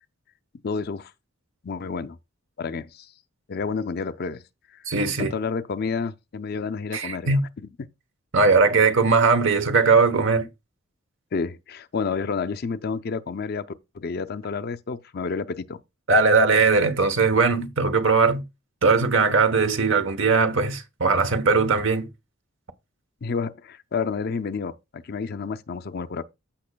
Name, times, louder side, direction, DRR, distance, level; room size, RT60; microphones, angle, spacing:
voice 1, 0.6-1.1 1.6-2.2 2.6-3.1 3.5-4.4 4.7-4.8 5.2-7.4 7.8-7.9 11.3-13.7 13.9-15.8 23.2-26.2, left 5 dB, 50° left, 0.5 m, -30 dB
voice 2, 4.9-5.3 6.9-7.4 8.3-10.5 16.1-18.4 18.8-22.1, right 4 dB, 60° right, 1.0 m, -19 dB
14.5 x 5.8 x 2.2 m
head